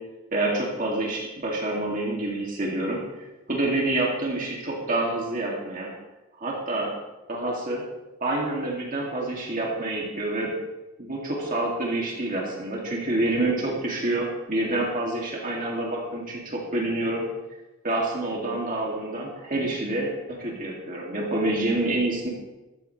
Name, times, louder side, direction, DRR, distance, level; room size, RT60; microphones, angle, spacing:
voice 1, 0.3-3.0 3.5-5.9 6.4-6.9 7.3-7.8 8.2-10.5 11.0-17.2 17.8-22.3, right 2 dB, 40° right, -3 dB, 2.4 m, -27 dB
15.0 x 14.5 x 3.3 m, 1.1 s
head